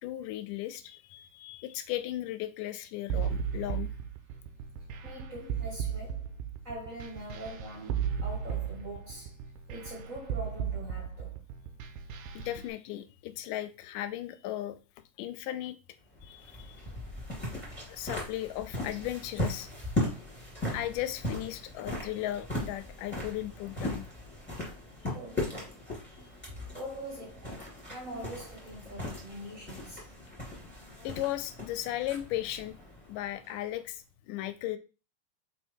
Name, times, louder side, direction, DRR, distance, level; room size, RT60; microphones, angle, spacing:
voice 1, 0.0-3.9 12.3-14.8 15.2-15.8 16.2-16.8 17.9-19.7 20.7-24.1 31.0-32.8 33.1-34.8, left 14 dB, 80° left, 2.0 m, -36 dB
sound 1, 3.1-12.6, right 8 dB, 85° right, 2.2 m, -35 dB
voice 2, 5.0-6.3 6.6-9.4 9.7-11.4 25.1-25.8 26.7-30.1, right 1 dB, 30° right, 1.6 m, -43 dB
sound 2, 16.1-33.7, left 1 dB, 5° left, 2.0 m, -38 dB
4.6 x 4.6 x 4.4 m
omnidirectional pair, 3.9 m